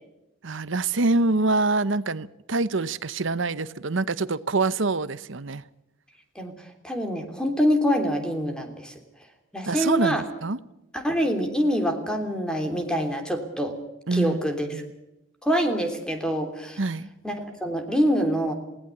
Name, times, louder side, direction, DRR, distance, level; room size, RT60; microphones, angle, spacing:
voice 1, 0.4-5.6 9.7-10.6 14.1-14.4 14.7-14.8 16.8-17.1, right 3 dB, 65° right, 0.9 m, -25 dB
voice 2, 6.3-8.9 9.5-10.2 10.9-13.8 14.1-14.8 15.4-16.8 17.2-18.5, equal, 5° left, 3.1 m, -25 dB
19.5 x 18.0 x 8.4 m
head